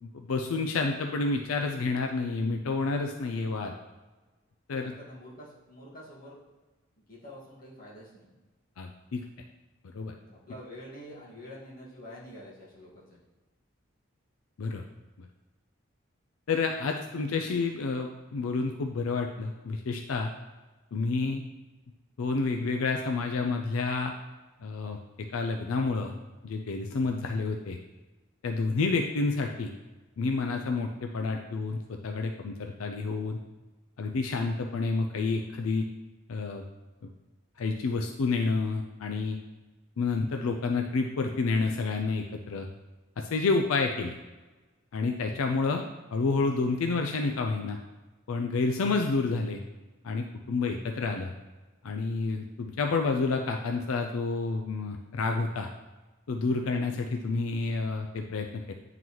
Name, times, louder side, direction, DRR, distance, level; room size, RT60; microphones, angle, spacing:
voice 1, 0.0-3.7 4.7-4.9 8.8-9.2 9.9-10.1 14.6-14.8 16.5-20.3 20.9-21.4 22.2-24.1 24.6-26.1 26.4-27.8 28.4-29.7 30.2-33.4 34.0-35.9 36.3-36.6 37.0-37.1 37.6-39.4 40.0-42.7 43.2-44.2 44.9-45.8 46.1-47.8 48.3-49.6 50.0-51.3 51.8-55.7 56.3-58.7, left 3 dB, 85° left, 4 dB, 0.4 m, -29 dB
voice 2, 4.7-6.4 7.1-8.3 10.3-13.2, equal, 40° left, -6 dB, 1.8 m, -47 dB
9.0 x 3.9 x 3.0 m, 1.2 s
head